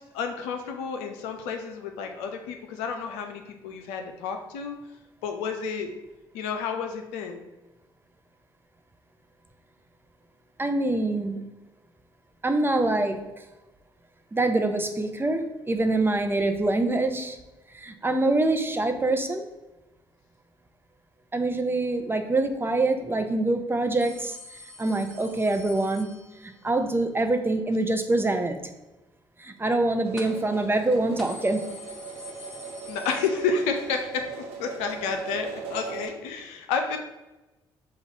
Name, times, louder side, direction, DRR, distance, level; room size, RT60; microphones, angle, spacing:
voice 1, 0.0-4.7 5.2-5.9 6.3-7.4 32.9-34.3 34.6-37.0, left 5 dB, 75° left, 5 dB, 0.5 m, -30 dB
voice 2, 10.6-11.4 12.4-13.2 14.3-17.4 17.7-19.5 21.3-24.4 24.8-26.1 26.4-28.6 29.4-31.6, right 2 dB, 20° right, 6 dB, 0.6 m, -25 dB
sound 1, 24.0-26.7 30.2-30.6 30.9-31.0 31.2-33.9 34.2-34.3 35.4-35.5, left 2 dB, 5° left, 1.1 m, -45 dB
sound 2, 30.0-36.1, right 5 dB, 65° right, 0.8 m, -39 dB
5.3 x 2.4 x 3.9 m, 1.0 s
hypercardioid pair, 45°, 11 cm